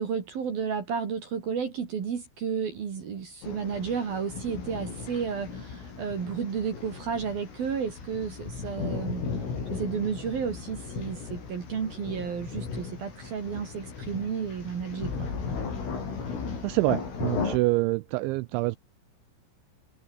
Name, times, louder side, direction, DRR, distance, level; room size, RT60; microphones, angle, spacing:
voice 1, 0.0-9.3 9.7-15.3, right 6 dB, 50° right, 4.5 m, -32 dB
sound 1, 3.4-17.6, left 5 dB, 70° left, 10.5 m, -36 dB
voice 2, 16.6-18.8, right 21 dB, 90° right, 2.6 m, -26 dB
omnidirectional pair, 5.9 m